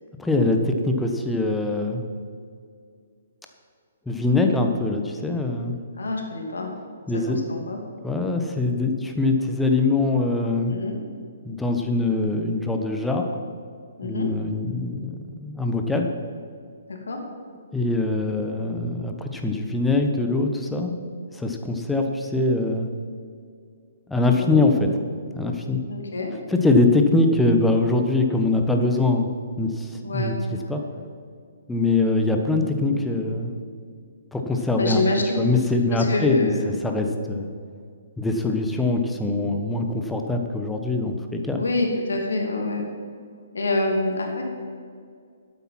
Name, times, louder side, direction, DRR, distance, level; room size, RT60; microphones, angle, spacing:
voice 1, 0.2-2.1 4.1-5.8 7.1-7.4 8.0-10.7 11.4-13.3 14.0-16.1 17.7-20.9 21.3-22.9 24.1-24.9 25.3-25.8 26.5-29.3 29.6-30.3 30.7-30.8 31.7-33.6 34.3-35.0 35.3-37.5 38.2-41.6, left 2 dB, 5° left, 3 dB, 1.1 m, -23 dB
voice 2, 6.0-6.7 7.1-7.8 10.7-10.9 14.0-14.3 16.9-17.2 24.4-24.7 25.9-26.3 30.0-30.4 34.8-35.5 35.9-36.7 41.5-42.9 43.5-44.4, left 2 dB, 70° left, 2 dB, 2.6 m, -26 dB
12.0 x 8.7 x 6.0 m, 2.2 s
figure-of-eight pair, 125°, 0 cm